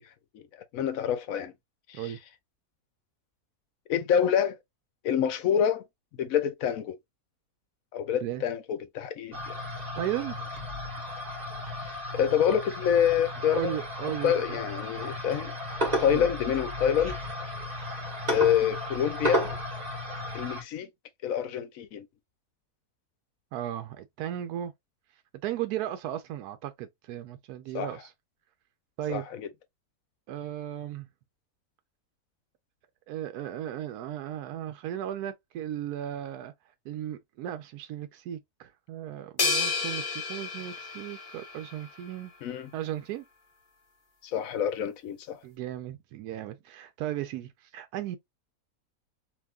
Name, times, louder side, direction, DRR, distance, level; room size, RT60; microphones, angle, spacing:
voice 1, 0.7-1.5 1.9-2.1 3.9-4.6 5.0-5.8 6.2-7.0 7.9-9.5 11.8-13.8 14.2-15.5 16.0-17.2 18.3-19.5 20.3-20.9 21.2-22.1 27.7-27.9 29.1-29.5 42.4-42.7 44.2-45.4, left 9 dB, 70° left, 1.0 m, -27 dB
sound 1, 9.3-20.6, equal, 25° right, 1.5 m, -34 dB
voice 2, 10.0-10.5 13.5-14.6 16.1-16.3 23.5-24.7 25.4-28.1 29.0-29.3 30.3-31.1 33.1-36.5 36.8-42.3 42.7-43.2 45.4-48.2, right 12 dB, 80° right, 1.1 m, -36 dB
sound 2, 39.4-41.9, left 4 dB, 35° left, 1.3 m, -31 dB
3.4 x 2.9 x 2.3 m
omnidirectional pair, 1.6 m